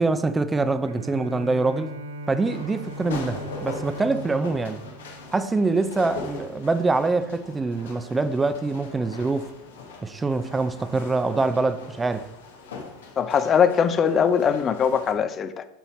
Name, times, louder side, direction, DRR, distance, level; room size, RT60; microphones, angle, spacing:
voice 1, 0.0-1.9 2.3-4.8 5.3-9.5 10.0-12.3, right 3 dB, 15° right, 0.6 m, -24 dB
Bowed string instrument, 0.8-6.1, right 1 dB, 75° right, 0.7 m, -39 dB
sound 1, 2.4-15.1, left 4 dB, 75° left, 1.2 m, -40 dB
voice 2, 13.2-15.7, left 7 dB, 35° left, 0.6 m, -21 dB
6.9 x 5.7 x 4.3 m
hypercardioid pair, 85°, 0 cm